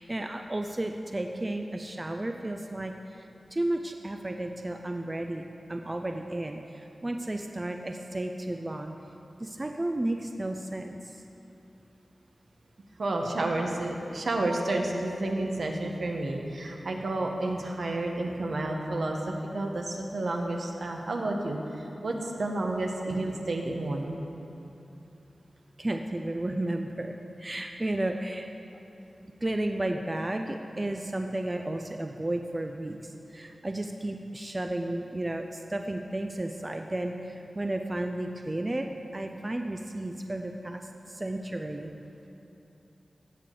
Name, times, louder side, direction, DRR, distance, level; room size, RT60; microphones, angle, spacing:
voice 1, 0.0-5.4 5.7-8.9 9.4-11.2 25.8-28.5 29.4-41.9, right 1 dB, 30° right, 4 dB, 0.5 m, -33 dB
voice 2, 13.0-24.2, right 2 dB, 75° right, 1 dB, 1.1 m, -30 dB
16.5 x 6.5 x 3.9 m, 2.8 s
wide cardioid pair, 65°, 0 cm